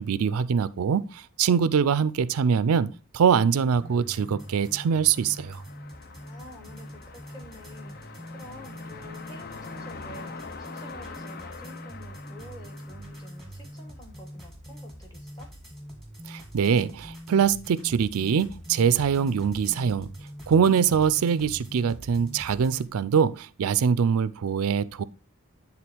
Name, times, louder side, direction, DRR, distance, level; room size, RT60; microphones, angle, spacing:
voice 1, 0.0-5.6 16.3-20.1 20.5-25.0, right 7 dB, 85° right, 0.4 m, -23 dB
sound 1, 3.7-22.9, equal, ahead, 1.8 m, -43 dB
sound 2, 3.8-14.0, left 4 dB, 45° left, 0.6 m, -45 dB
voice 2, 6.2-15.5, equal, 15° left, 1.6 m, -48 dB
9.6 x 3.6 x 4.4 m
head